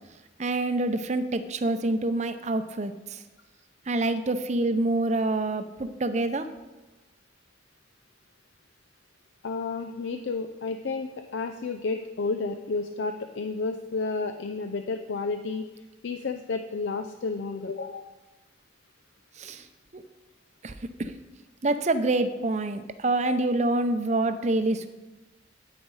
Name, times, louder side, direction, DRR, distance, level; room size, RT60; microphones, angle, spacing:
voice 1, 0.4-3.2 3.9-6.5 19.4-19.6 19.9-20.0 20.6-20.7 21.0-21.2 21.6-24.9, right 2 dB, 35° right, 10 dB, 0.6 m, -26 dB
voice 2, 9.4-15.7 16.0-18.1, left 4 dB, 70° left, 7 dB, 0.5 m, -31 dB
9.3 x 8.7 x 4.7 m, 1.1 s
head